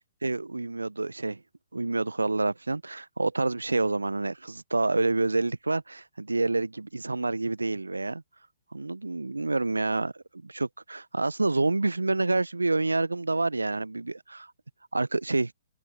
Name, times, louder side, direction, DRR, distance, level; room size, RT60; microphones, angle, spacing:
voice 1, 0.2-1.4 1.7-8.2 8.7-14.5 14.9-15.5, right 3 dB, 80° right, 0.9 m, -28 dB
open air
figure-of-eight pair, 125°, 0 cm